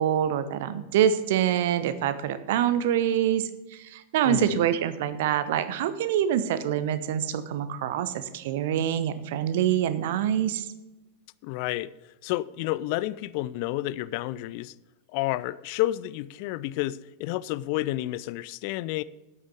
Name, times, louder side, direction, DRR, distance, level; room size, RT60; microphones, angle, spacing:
voice 1, 0.0-10.7, right 10 dB, 55° right, 0.9 m, -25 dB
voice 2, 4.2-4.6 11.4-11.9 12.2-14.7 15.1-19.0, left 16 dB, 45° left, 0.4 m, -30 dB
8.8 x 8.5 x 6.5 m
figure-of-eight pair, 90°, 0 cm